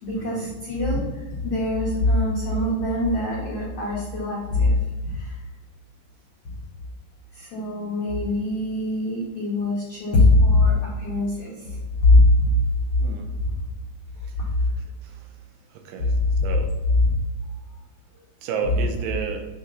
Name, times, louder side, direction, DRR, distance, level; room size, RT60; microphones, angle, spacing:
voice 1, 0.0-1.0 1.4-4.7 5.0-5.3 7.3-11.5 12.0-12.6 16.0-16.1 17.0-17.1, left 2 dB, 85° left, -6 dB, 1.4 m, -21 dB
voice 2, 15.7-16.1 16.4-16.7 18.4-19.4, right 6 dB, 80° right, 4 dB, 2.6 m, -32 dB
7.9 x 3.1 x 4.0 m, 1.2 s
omnidirectional pair, 5.0 m